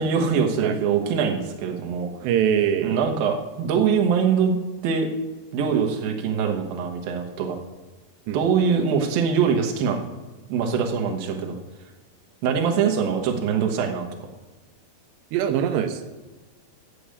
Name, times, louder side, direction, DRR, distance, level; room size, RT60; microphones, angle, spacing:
voice 1, 0.0-2.1 2.8-5.1 5.5-7.6 8.3-10.0 10.5-11.6 12.4-14.1, right 6 dB, 65° right, 3 dB, 2.8 m, -23 dB
voice 2, 2.2-3.0 8.3-8.4 15.3-16.0, right 9 dB, 90° right, 6 dB, 3.0 m, -23 dB
10.0 x 7.1 x 8.4 m, 1.2 s
omnidirectional pair, 4.8 m